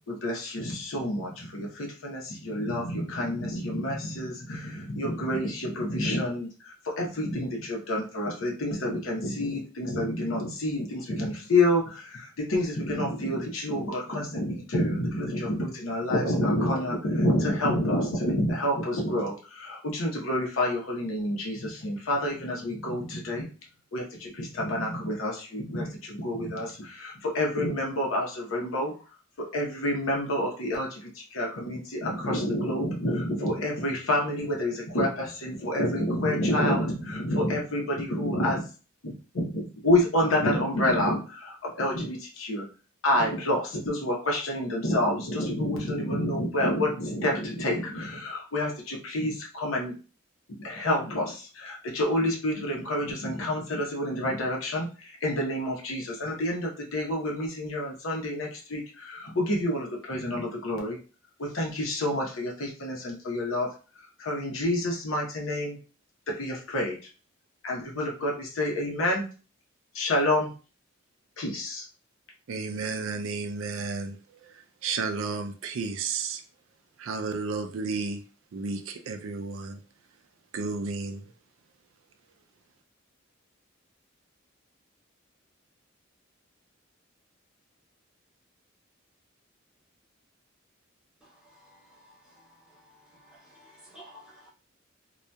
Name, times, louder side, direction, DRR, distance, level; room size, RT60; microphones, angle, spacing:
voice 1, 0.1-23.5 23.9-28.9 29.4-38.6 39.0-42.6 43.0-50.0 50.6-61.0 61.4-63.7 64.2-65.8 66.4-67.0 67.6-69.2 69.9-70.5 71.4-71.8, left 1 dB, 80° left, -1 dB, 0.8 m, -28 dB
voice 2, 72.5-74.1 74.8-76.4 77.0-78.2 78.5-79.8 80.5-81.2, right 4 dB, 75° right, 5 dB, 0.4 m, -32 dB
voice 3, 91.7-92.0 92.3-92.4 93.1-94.5, equal, 5° right, -7 dB, 1.1 m, -52 dB
2.7 x 2.3 x 2.2 m, 0.36 s
head